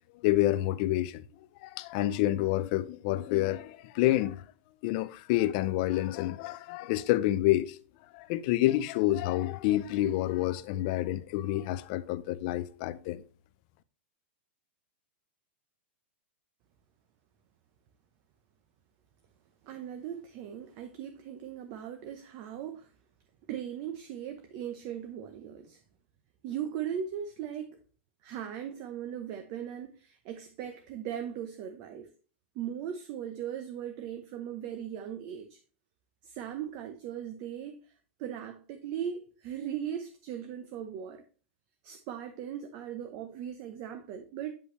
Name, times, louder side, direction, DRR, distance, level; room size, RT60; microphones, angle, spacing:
voice 1, 0.1-1.2 1.6-4.4 4.8-7.8 8.1-13.2, left 15 dB, 45° left, 0.5 m, -28 dB
voice 2, 19.6-22.9 23.5-25.8 26.4-27.8 28.2-32.1 32.5-35.6 36.2-37.8 38.2-41.2 41.8-44.6, right 9 dB, 40° right, 0.8 m, -38 dB
8.3 x 5.4 x 3.1 m
supercardioid pair, 150°, 6 cm